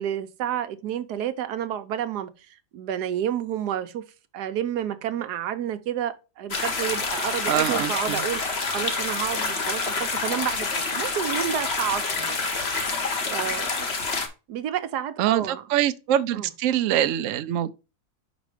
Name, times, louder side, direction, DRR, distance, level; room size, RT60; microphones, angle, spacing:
voice 1, 0.0-2.3 2.7-4.0 4.3-8.4 8.7-12.4 13.3-13.9 14.5-15.6 16.3-16.5, right 10 dB, 90° right, 1.3 m, -30 dB
sound 1, 6.5-14.3, left 4 dB, 45° left, 1.3 m, -27 dB
voice 2, 7.5-8.2 15.2-17.7, right 11 dB, 65° right, 0.8 m, -24 dB
5.2 x 5.1 x 4.9 m
omnidirectional pair, 1.7 m